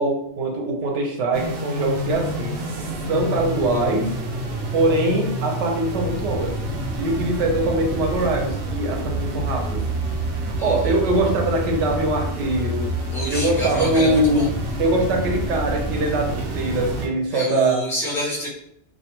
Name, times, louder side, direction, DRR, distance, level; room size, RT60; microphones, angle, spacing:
voice 1, 0.0-4.2 4.7-6.5 7.0-9.8 10.4-12.9 13.3-14.5 14.8-17.8, right 2 dB, 85° right, 2 dB, 0.9 m, -22 dB
sound 1, 1.3-17.1, right 1 dB, 65° right, 0.7 m, -28 dB
voice 2, 10.6-10.9 13.1-14.5 17.3-18.5, equal, 5° left, -6 dB, 0.6 m, -28 dB
2.3 x 2.2 x 2.9 m, 0.75 s
omnidirectional pair, 1.2 m